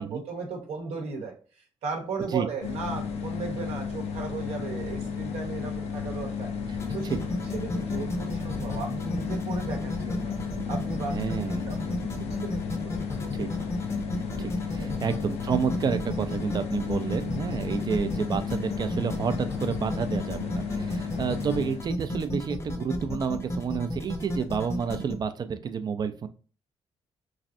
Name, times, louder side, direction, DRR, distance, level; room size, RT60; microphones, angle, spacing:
voice 1, 0.0-6.5 6.9-7.1 7.5-10.3 10.7-11.1 11.7-13.4 14.8-15.0 20.8-21.0, right 4 dB, 80° right, 2 dB, 0.8 m, -36 dB
sound 1, 2.6-21.9, left 6 dB, 70° left, 0.5 m, -33 dB
sound 2, 6.7-25.1, left 1 dB, 25° left, 0.6 m, -33 dB
voice 2, 11.1-11.8 13.3-13.5 14.4-26.3, right 6 dB, 40° right, 10 dB, 0.4 m, -30 dB
3.1 x 2.5 x 2.6 m, 0.37 s
cardioid pair, 90°, 11 cm